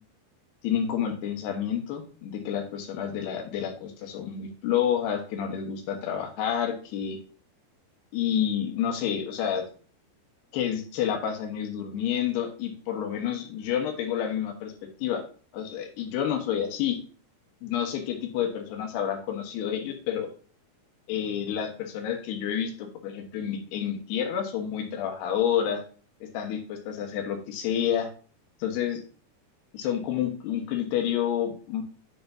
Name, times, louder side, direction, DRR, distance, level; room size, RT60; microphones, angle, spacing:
voice 1, 0.6-7.2 8.1-9.6 10.5-14.7 15.0-15.2 15.5-17.0 17.6-20.3 21.1-25.8 26.2-28.1 28.6-29.0 29.7-31.8, left 9 dB, 80° left, 4 dB, 3.2 m, -29 dB
9.0 x 6.7 x 2.7 m, 0.40 s
omnidirectional pair, 4.8 m